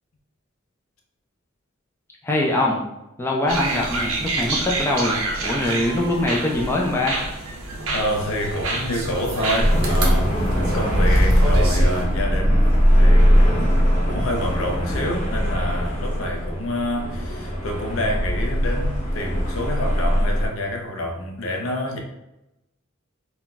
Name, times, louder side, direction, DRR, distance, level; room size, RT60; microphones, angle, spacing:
voice 1, 2.2-2.8 3.2-7.2, left 1 dB, 10° left, -2 dB, 0.4 m, -23 dB
sound 1, 3.5-12.1, right 2 dB, 85° right, 0.6 m, -27 dB
voice 2, 7.9-22.0, left 1 dB, 70° left, 2 dB, 0.5 m, -28 dB
sound 2, 9.6-20.5, equal, 40° left, 0.8 m, -20 dB
2.3 x 2.1 x 3.9 m, 0.90 s
head